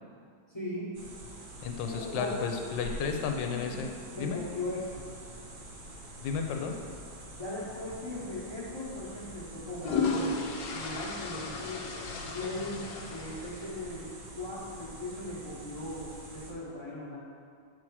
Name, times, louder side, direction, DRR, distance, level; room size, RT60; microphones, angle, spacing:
voice 1, 0.5-0.9 1.9-2.4 2.9-3.8 4.1-5.0 7.3-10.4 10.7-11.8 12.3-14.1 14.4-17.2, left 1 dB, 20° left, -7 dB, 0.9 m, -39 dB
sound 1, 0.9-16.5, right 1 dB, 50° right, 0.6 m, -46 dB
voice 2, 1.6-4.4 6.2-6.8, left 6 dB, 80° left, 4 dB, 1.3 m, -33 dB
sound 2, 8.1-8.3 9.5-14.1, left 4 dB, 65° left, 1.0 m, -35 dB
7.2 x 4.3 x 4.7 m, 2.2 s
omnidirectional pair, 2.0 m